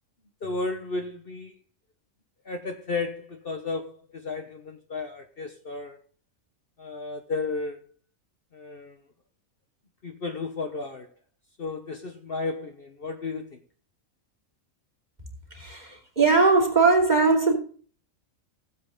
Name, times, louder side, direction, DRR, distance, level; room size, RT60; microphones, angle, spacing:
voice 1, 0.4-1.5 2.4-6.0 6.8-7.8 8.5-9.0 10.0-11.1 11.6-13.6, left 3 dB, 45° left, 1.2 m, -33 dB
voice 2, 15.5-17.6, right 4 dB, 30° right, 2.8 m, -20 dB
16.0 x 7.8 x 3.7 m
omnidirectional pair, 1.4 m